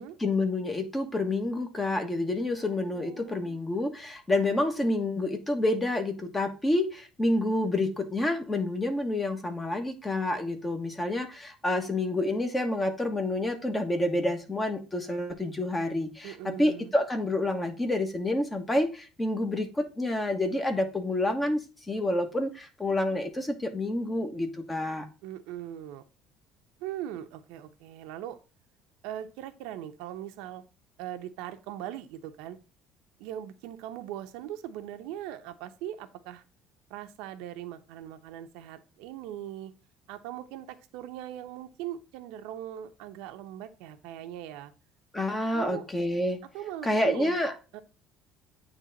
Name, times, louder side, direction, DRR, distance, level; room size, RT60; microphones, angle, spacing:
voice 1, 0.0-21.6 21.9-25.1 45.1-46.4 46.8-47.5, left 1 dB, 15° left, 6 dB, 1.2 m, -28 dB
voice 2, 2.6-3.6 16.2-16.9 25.2-26.0 26.8-28.4 29.0-30.6 31.0-32.6 33.2-36.4 36.9-39.7 40.1-44.7 45.3-45.9 46.5-47.4 47.7-47.8, right 11 dB, 90° right, 8 dB, 0.9 m, -40 dB
8.9 x 3.4 x 4.0 m, 0.32 s
cardioid pair, 150°, 0 cm